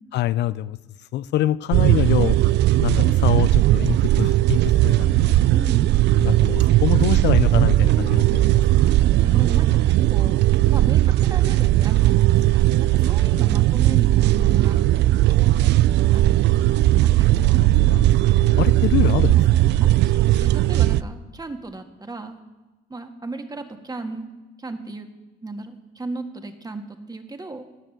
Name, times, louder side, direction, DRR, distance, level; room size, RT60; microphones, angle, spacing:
voice 1, 0.1-0.8 1.1-2.4 2.8-5.4 6.1-8.9 18.6-19.4, left 14 dB, 65° left, 16 dB, 0.4 m, -25 dB
sound 1, 1.7-21.0, right 15 dB, 65° right, 0.4 m, -17 dB
voice 2, 5.5-6.0 9.2-10.4 10.6-16.4 17.0-18.1 19.8-22.4 22.9-24.3 24.6-25.1 25.4-27.7, right 2 dB, 20° right, 5 dB, 1.7 m, -36 dB
17.5 x 6.7 x 7.8 m, 1.1 s
supercardioid pair, 70°, 19 cm